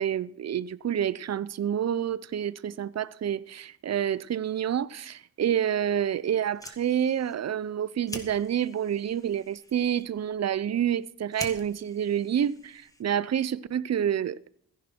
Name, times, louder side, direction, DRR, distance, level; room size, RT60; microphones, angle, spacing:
voice 1, 0.0-14.4, right 9 dB, 45° right, 0.6 m, -28 dB
Fire, 6.4-13.3, left 1 dB, 10° left, 1.8 m, -46 dB
15.0 x 10.5 x 4.4 m
cardioid pair, 85°, 36 cm